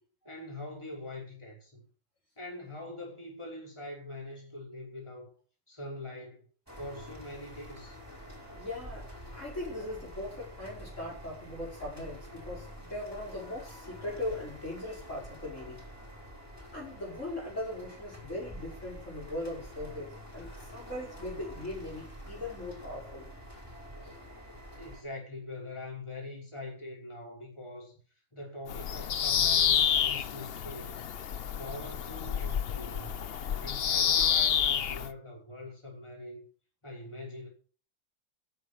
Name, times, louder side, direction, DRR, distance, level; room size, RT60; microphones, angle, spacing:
voice 1, 0.2-1.8 2.4-5.3 5.7-6.5 6.8-8.0 24.8-27.9 28.3-31.1 31.6-33.2 33.6-36.5 36.8-37.5, left 2 dB, 15° left, 5.6 m, -43 dB
sound 1, 6.7-25.0, equal, 10° right, 5.0 m, -47 dB
voice 2, 8.5-15.9 16.7-23.3 24.0-24.1, left 1 dB, 40° left, 5.6 m, -39 dB
Bird vocalization bird call bird song, 28.7-35.1, left 8 dB, 65° left, 0.5 m, -29 dB
13.5 x 9.6 x 6.6 m
omnidirectional pair, 2.0 m